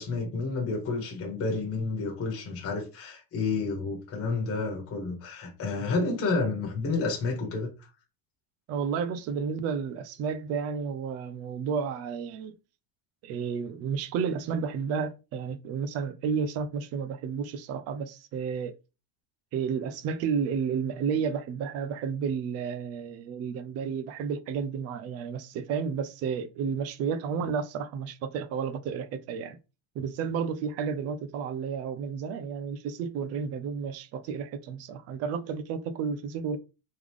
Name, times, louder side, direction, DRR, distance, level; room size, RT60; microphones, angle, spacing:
voice 1, 0.0-7.7, left 3 dB, 30° left, 1.3 m, -30 dB
voice 2, 8.7-12.6 13.2-18.8 19.5-29.6 30.0-36.6, right 6 dB, 35° right, 0.4 m, -31 dB
3.6 x 3.2 x 3.5 m
cardioid pair, 150°, 49 cm